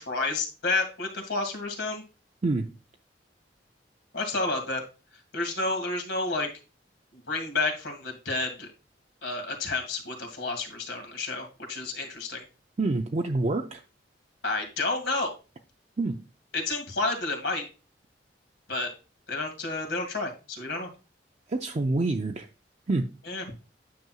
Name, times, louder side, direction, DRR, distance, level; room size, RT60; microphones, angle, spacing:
voice 1, 0.0-2.0 4.1-4.8 5.3-6.5 7.1-8.7 9.2-12.4 14.4-15.3 16.5-17.7 18.7-18.9 19.3-20.9 23.3-23.4, left 3 dB, 75° left, 2.0 m, -30 dB
voice 2, 2.4-2.7 12.8-13.8 16.0-16.3 21.5-22.5 22.9-23.2, right 2 dB, 40° right, 0.5 m, -27 dB
9.3 x 6.0 x 2.4 m
head